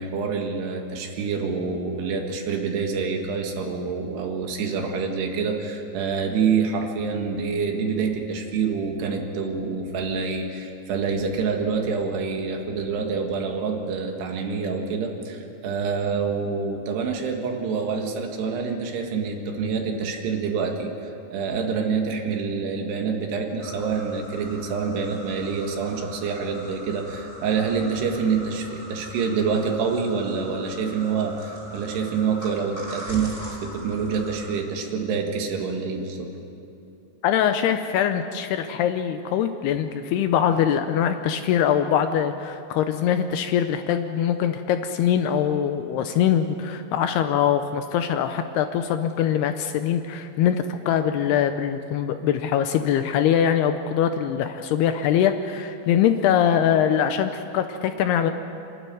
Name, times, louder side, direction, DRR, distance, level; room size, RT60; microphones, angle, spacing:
voice 1, 0.0-33.4 33.6-36.3, right 5 dB, 70° right, 3 dB, 3.6 m, -27 dB
sound 1, 23.6-34.6, equal, 10° right, 3.1 m, -41 dB
voice 2, 37.2-58.3, left 9 dB, 80° left, 8 dB, 2.4 m, -23 dB
27.0 x 12.5 x 9.4 m, 2.8 s
omnidirectional pair, 5.2 m